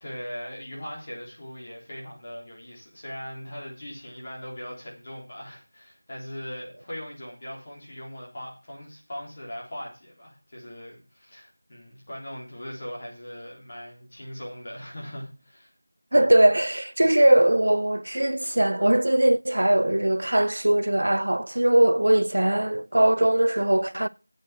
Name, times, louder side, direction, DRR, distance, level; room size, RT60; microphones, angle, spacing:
voice 1, 0.0-15.7, equal, 25° left, 3.7 m, -40 dB
voice 2, 16.1-24.1, right 1 dB, 70° right, 0.5 m, -20 dB
10.0 x 8.3 x 6.2 m
figure-of-eight pair, 175°, 0 cm